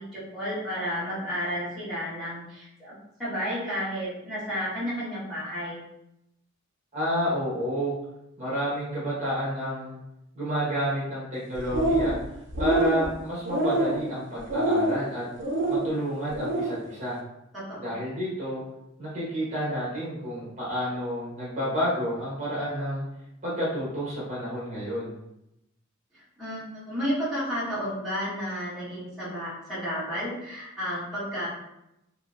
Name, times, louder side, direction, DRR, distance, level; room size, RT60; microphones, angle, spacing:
voice 1, 0.0-5.8 17.5-17.9 26.1-31.5, equal, ahead, -12 dB, 1.2 m, -32 dB
voice 2, 6.9-8.0 8.4-10.0 10.3-12.2 12.6-15.2 15.7-17.2 17.8-18.6 19.0-23.0 23.4-25.2, equal, 35° right, -8 dB, 1.1 m, -30 dB
sound 1, 11.5-12.2 12.5-13.1 13.4-14.0 14.5-15.0 15.4-15.8 16.3-16.7, right 1 dB, 60° right, 0.6 m, -25 dB
2.8 x 2.7 x 2.4 m, 0.85 s
head